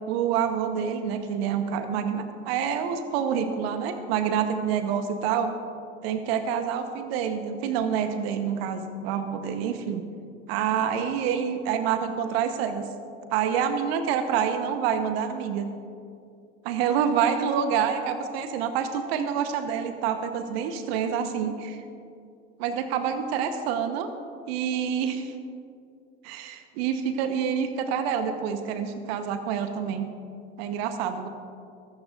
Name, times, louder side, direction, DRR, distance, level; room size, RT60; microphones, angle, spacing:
voice 1, 0.1-5.5 6.0-10.0 10.5-12.9 13.3-15.7 16.6-21.8 22.6-24.1 24.5-25.3 26.2-30.1 30.6-31.3, right 7 dB, 60° right, 8 dB, 1.1 m, -27 dB
23.5 x 13.0 x 2.5 m, 2.5 s
figure-of-eight pair, 75°, 35 cm